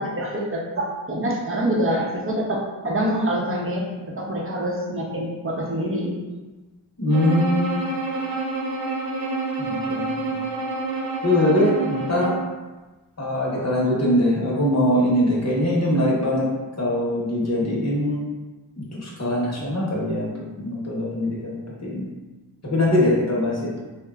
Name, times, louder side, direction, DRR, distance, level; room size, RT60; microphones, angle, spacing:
voice 1, 0.0-3.9 4.1-6.1, right 1 dB, 30° right, -2 dB, 0.7 m, -25 dB
voice 2, 7.0-7.9 9.6-10.4 11.2-12.5 13.2-16.5 16.8-18.3 18.8-21.5 21.8-22.1 22.6-23.8, left 1 dB, 35° left, -5 dB, 1.0 m, -22 dB
Bowed string instrument, 7.1-12.5, right 3 dB, 80° right, 0.7 m, -28 dB
2.9 x 2.2 x 2.3 m, 1.2 s
cardioid pair, 45°, 45 cm